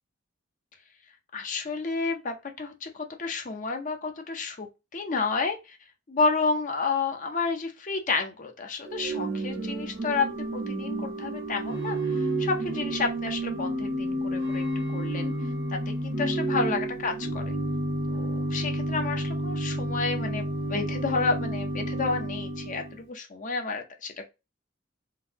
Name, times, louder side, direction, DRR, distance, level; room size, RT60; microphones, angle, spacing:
voice 1, 1.3-4.7 4.9-5.8 6.1-14.6 14.9-15.3 15.7-17.5 18.1-24.2, left 4 dB, 40° left, 0.6 m, -30 dB
Organ / Church bell, 8.8-23.0, right 1 dB, 75° right, 1.3 m, -30 dB
3.8 x 2.6 x 2.7 m
head